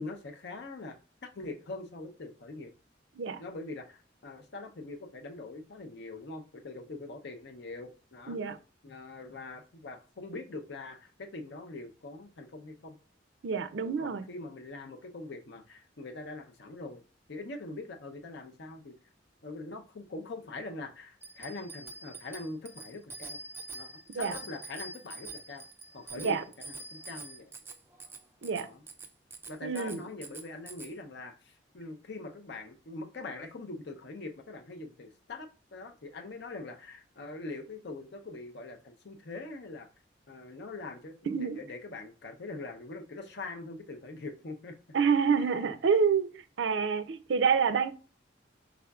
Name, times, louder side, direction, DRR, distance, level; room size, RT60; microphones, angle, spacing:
voice 1, 0.0-2.7 3.4-8.4 8.8-13.0 13.8-17.0 17.3-19.0 19.4-23.4 23.7-23.9 24.1-25.7 25.9-27.5 28.5-28.8 29.5-39.9 40.3-44.8 45.4-45.6, left 2 dB, 65° left, 0.6 m, -43 dB
voice 2, 8.3-8.6 13.4-14.2 24.1-24.4 26.2-26.4 28.4-28.7 29.6-30.0 41.3-41.6 44.9-47.9, right 6 dB, 70° right, 0.4 m, -27 dB
Bicycle bell, 21.2-30.9, right 3 dB, 10° right, 0.4 m, -46 dB
4.9 x 3.6 x 2.3 m
head